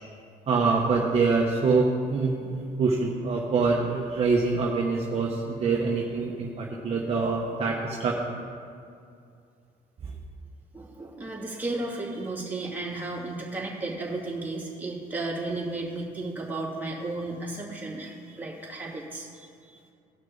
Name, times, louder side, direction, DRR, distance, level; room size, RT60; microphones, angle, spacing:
voice 1, 0.5-8.4, right 4 dB, 40° right, -2 dB, 1.1 m, -25 dB
voice 2, 10.7-19.8, right 2 dB, 10° right, -5 dB, 2.6 m, -34 dB
18.0 x 6.1 x 4.0 m, 2.4 s
cardioid pair, 110°, 17 cm